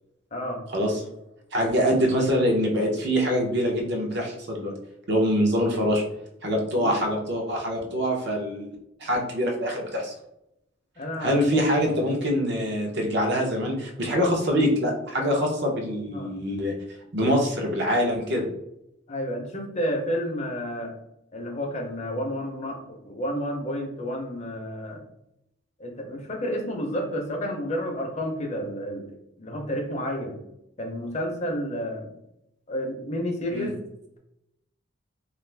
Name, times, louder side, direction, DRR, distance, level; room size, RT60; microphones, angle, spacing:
voice 1, 0.3-0.6 6.8-6.9 11.0-11.6 16.1-16.3 19.1-21.0 21.3-25.0 25.8-29.1 29.4-30.4 30.8-32.1 32.7-33.7, equal, 35° left, 2 dB, 0.5 m, -30 dB
voice 2, 1.5-4.7 5.1-6.0 6.4-8.7 9.0-10.1 11.2-16.7 17.1-18.5 33.5-33.7, equal, 60° right, 1 dB, 0.7 m, -24 dB
2.5 x 2.4 x 3.2 m, 0.82 s
head